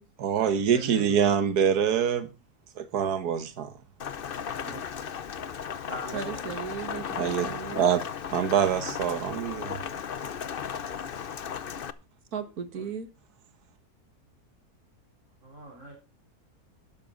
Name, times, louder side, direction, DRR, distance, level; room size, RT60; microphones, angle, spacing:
voice 1, 0.2-2.3 2.8-3.7 7.2-8.0 8.3-9.8, right 8 dB, 85° right, 1.6 m, -25 dB
voice 2, 0.7-1.2 4.6-4.8 5.9-6.5 8.8-9.0 12.7-12.9 15.4-15.9, right 2 dB, 50° right, 3.9 m, -40 dB
Rain, 4.0-11.9, left 7 dB, 50° left, 0.7 m, -35 dB
voice 3, 6.1-7.9 12.3-13.1, right 7 dB, 70° right, 1.9 m, -36 dB
12.0 x 11.5 x 3.8 m
omnidirectional pair, 1.6 m